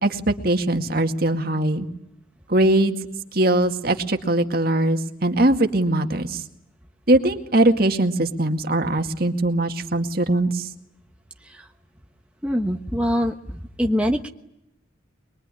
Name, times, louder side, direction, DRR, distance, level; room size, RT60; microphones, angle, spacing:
voice 1, 0.0-1.9 2.5-3.0 3.3-6.4 7.1-10.7, right 1 dB, 50° right, 5 dB, 2.1 m, -21 dB
voice 2, 12.4-14.3, equal, 5° right, 2 dB, 1.2 m, -24 dB
24.0 x 23.0 x 10.0 m, 0.79 s
head